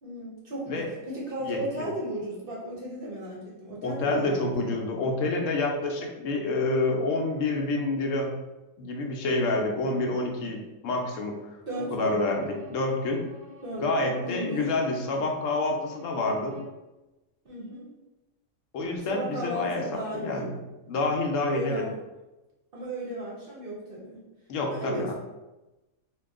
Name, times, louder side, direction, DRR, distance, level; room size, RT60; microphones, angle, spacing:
voice 1, 0.0-4.7 11.7-12.2 13.6-14.7 17.4-17.9 19.1-20.5 21.4-22.0 22.7-24.2 24.7-25.1, right 1 dB, 55° right, -4 dB, 0.7 m, -35 dB
voice 2, 3.8-8.3 8.8-11.4 11.9-13.2 13.8-16.6 18.7-20.5 20.9-21.8 24.5-25.1, left 2 dB, 70° left, 1 dB, 0.9 m, -28 dB
Bowed string instrument, 11.7-16.8, left 3 dB, 70° right, 0.3 m, -48 dB
2.9 x 2.2 x 3.5 m, 1.0 s
omnidirectional pair, 1.5 m